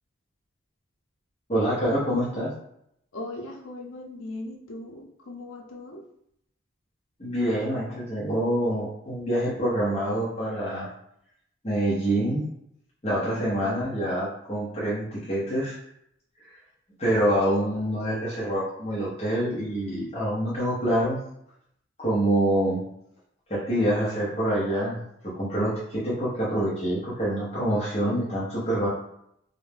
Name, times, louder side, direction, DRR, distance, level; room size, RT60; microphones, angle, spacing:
voice 1, 1.5-2.5 7.2-10.9 11.6-12.5 13.0-15.8 16.4-16.5 17.0-21.2 22.0-22.8 23.5-25.0 25.2-28.9, right 1 dB, 30° left, -8 dB, 0.7 m, -26 dB
voice 2, 3.1-6.0 13.1-13.7 28.0-28.2, left 2 dB, 85° left, 0 dB, 0.5 m, -39 dB
2.5 x 2.1 x 3.2 m, 0.73 s
head